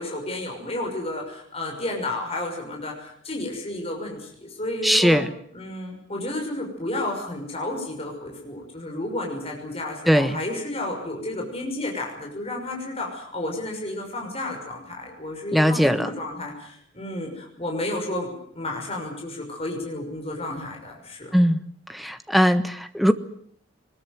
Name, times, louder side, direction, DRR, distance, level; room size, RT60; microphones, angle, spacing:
voice 1, 0.0-5.2 5.5-21.3, left 1 dB, 30° left, 1 dB, 6.3 m, -32 dB
voice 2, 4.8-5.3 10.1-10.4 15.5-16.1 21.3-21.6 21.9-23.1, equal, ahead, 10 dB, 1.3 m, -19 dB
23.0 x 21.0 x 9.3 m, 0.62 s
head